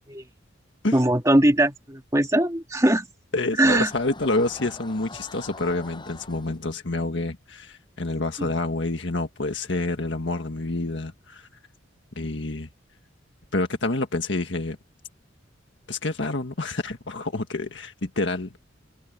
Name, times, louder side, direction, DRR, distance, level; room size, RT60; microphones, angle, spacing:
voice 1, 0.9-3.1 3.6-3.9 8.4-8.5, right 1 dB, 15° right, 1.9 m, -20 dB
voice 2, 3.3-11.5 12.2-12.7 13.5-14.8 15.9-18.5, left 2 dB, 65° left, 1.7 m, -28 dB
sound 1, 3.9-6.7, left 3 dB, 25° left, 7.2 m, -42 dB
open air
head